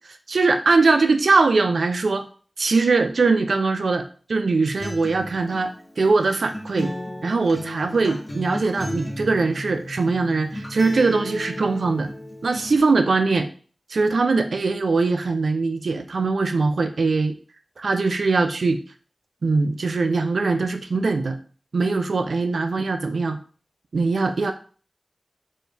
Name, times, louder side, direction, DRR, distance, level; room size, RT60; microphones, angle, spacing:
voice 1, 0.3-2.3 2.6-6.9 7.2-12.1 12.4-13.5 13.9-17.4 17.8-18.8 19.4-21.4 21.7-23.4 23.9-24.5, right 3 dB, 85° right, 7 dB, 0.3 m, -21 dB
Acoustic guitar, 4.8-12.8, left 1 dB, 45° left, 1.1 m, -34 dB
4.2 x 2.6 x 3.4 m, 0.42 s
cardioid pair, 45°, 0 cm